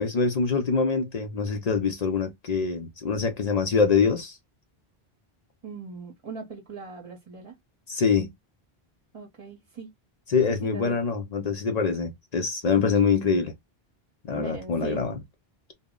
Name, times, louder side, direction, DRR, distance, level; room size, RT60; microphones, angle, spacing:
voice 1, 0.0-4.4 7.9-8.3 10.3-13.5 14.3-15.1, left 5 dB, 50° left, 0.5 m, -24 dB
voice 2, 5.6-7.6 9.1-9.9 10.5-11.0 14.3-15.1, right 5 dB, 35° right, 0.7 m, -39 dB
2.1 x 2.0 x 3.5 m
omnidirectional pair, 1.0 m